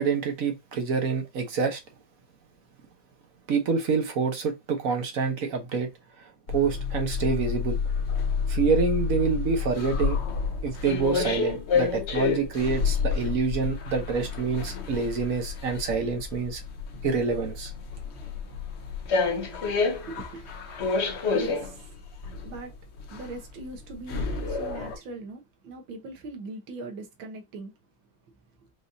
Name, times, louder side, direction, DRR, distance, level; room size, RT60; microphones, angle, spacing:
voice 1, 0.0-1.8 3.5-5.9 6.2-7.8 8.5-10.2 10.6-16.6 17.0-17.7, right 5 dB, 55° right, 1.2 m, -27 dB
sound 1, 6.5-25.0, left 5 dB, 55° left, 0.8 m, -29 dB
voice 2, 20.0-20.5 21.3-21.8 22.4-22.7 23.1-27.7, right 3 dB, 85° right, 1.8 m, -40 dB
5.1 x 2.6 x 2.7 m
omnidirectional pair, 2.1 m